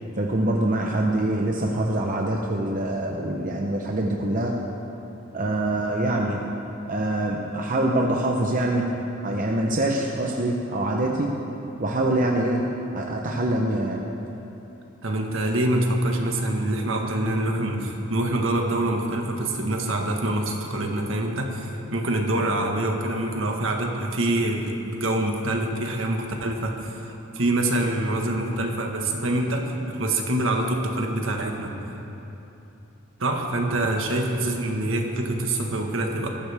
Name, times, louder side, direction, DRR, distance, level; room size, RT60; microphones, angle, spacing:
voice 1, 0.2-4.6 5.3-6.4 6.9-8.9 9.2-11.3 11.8-12.7 12.9-14.0, right 1 dB, 40° right, 0 dB, 0.9 m, -24 dB
voice 2, 15.0-31.7 33.2-36.3, right 1 dB, 65° right, 2 dB, 1.5 m, -25 dB
19.0 x 14.0 x 3.6 m, 2.9 s
head